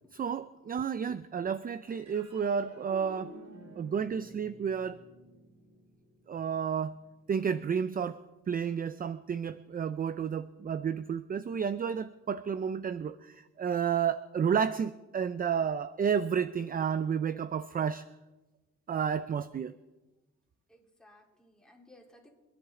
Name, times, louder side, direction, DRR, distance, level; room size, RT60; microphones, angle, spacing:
voice 1, 0.1-3.3 3.8-5.0 6.3-7.0 7.3-8.2 8.5-18.0 18.9-19.8, right 7 dB, 30° right, 14 dB, 0.5 m, -31 dB
sound 1, 1.9-8.6, right 1 dB, 75° right, 5.7 m, -52 dB
voice 2, 20.7-22.3, left 1 dB, ahead, -2 dB, 3.4 m, -59 dB
25.0 x 10.5 x 3.7 m, 1.1 s
cardioid pair, 90°, 30 cm